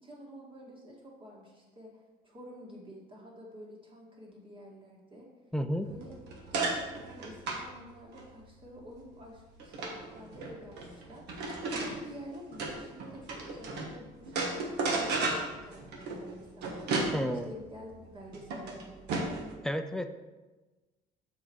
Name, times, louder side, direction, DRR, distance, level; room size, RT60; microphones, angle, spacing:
voice 1, 0.0-1.9 2.2-5.3 5.8-6.2 6.4-16.9 17.3-19.1, equal, 30° right, -2 dB, 2.1 m, -49 dB
voice 2, 5.5-5.9 17.1-17.5 19.6-20.1, equal, 5° left, 8 dB, 0.4 m, -31 dB
sound 1, 5.8-13.9 14.3-19.5, right 3 dB, 90° right, 1.3 m, -35 dB
6.9 x 5.0 x 4.7 m, 1.2 s
cardioid pair, 110°, 17 cm